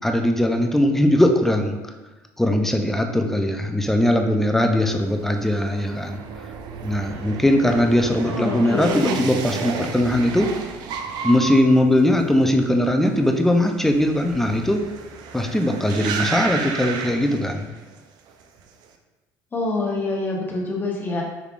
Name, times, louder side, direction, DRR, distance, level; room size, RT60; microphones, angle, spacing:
voice 1, 0.0-1.8 2.4-6.2 6.8-10.5 11.2-14.8 15.3-17.7, left 1 dB, 5° left, 4 dB, 0.4 m, -20 dB
sound 1, 4.9-18.0 18.3-18.8, right 5 dB, 65° right, 0.4 m, -33 dB
voice 2, 8.2-9.2 19.5-21.2, left 2 dB, 25° left, -2 dB, 1.0 m, -26 dB
4.8 x 3.3 x 2.4 m, 1.1 s
supercardioid pair, 100°, 8 cm